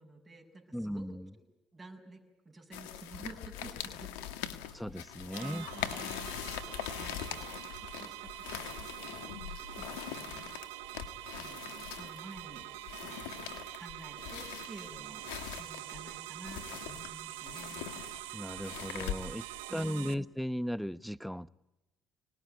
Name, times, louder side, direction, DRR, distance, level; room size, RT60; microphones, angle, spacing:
voice 1, 0.0-1.4 1.7-6.7 7.0-9.3 9.6-10.5 11.3-12.7 13.0-13.4 13.8-18.0 19.7-20.3, right 2 dB, 20° right, 1 dB, 6.8 m, -51 dB
voice 2, 0.7-1.3 4.7-5.7 18.3-19.5 19.7-21.5, equal, ahead, 15 dB, 0.9 m, -36 dB
sound 1, 2.7-19.6, left 10 dB, 85° left, 1.7 m, -42 dB
sound 2, 5.3-20.1, right 16 dB, 90° right, 0.9 m, -45 dB
26.5 x 19.5 x 9.4 m, 0.99 s
supercardioid pair, 65°, 0 cm